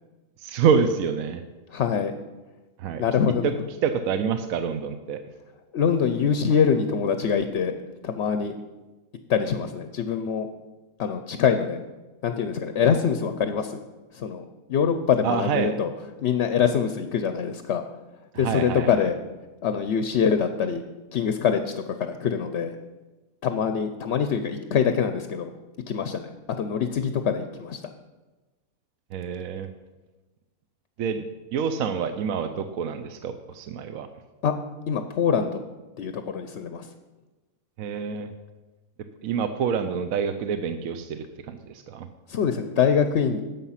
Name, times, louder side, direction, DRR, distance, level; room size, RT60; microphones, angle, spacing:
voice 1, 0.4-1.4 2.8-3.0 3.8-5.2 15.2-15.7 18.3-19.0 29.1-29.7 31.0-34.1 37.8-38.3 39.2-42.1, right 6 dB, 70° right, 9 dB, 1.1 m, -27 dB
voice 2, 1.7-2.1 3.0-3.5 5.7-7.7 8.0-8.5 9.3-10.5 11.0-11.8 12.2-13.8 14.1-14.4 14.7-15.9 16.2-17.8 18.4-19.1 19.6-20.8 21.1-22.7 23.4-25.5 25.9-26.3 26.6-27.8 34.4-34.5 34.9-35.6 36.0-36.9 42.3-43.4, left 7 dB, 60° left, 8 dB, 0.8 m, -24 dB
11.0 x 7.6 x 5.7 m, 1.2 s
omnidirectional pair, 1.6 m